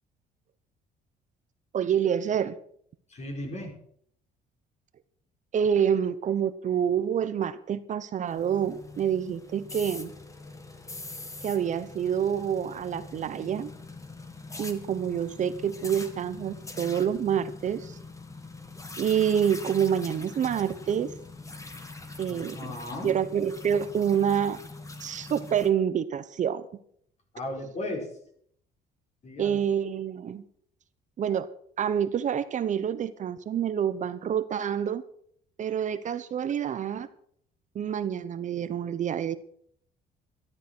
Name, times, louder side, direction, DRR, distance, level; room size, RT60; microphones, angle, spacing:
voice 1, 1.7-2.6 5.5-10.1 11.4-13.7 14.6-18.0 19.0-21.1 22.2-22.6 23.0-24.6 25.0-26.7 29.4-30.4 31.2-31.5 31.8-35.0 35.6-37.1 37.7-39.4, right 8 dB, 45° right, 13 dB, 0.9 m, -27 dB
voice 2, 3.1-3.8 22.3-23.1 27.3-28.1 29.2-29.6, left 1 dB, 40° left, 2 dB, 5.2 m, -36 dB
sound 1, 8.3-25.7, left 3 dB, 20° left, 2.1 m, -43 dB
13.0 x 12.5 x 6.2 m, 0.65 s
cardioid pair, 110°, 17 cm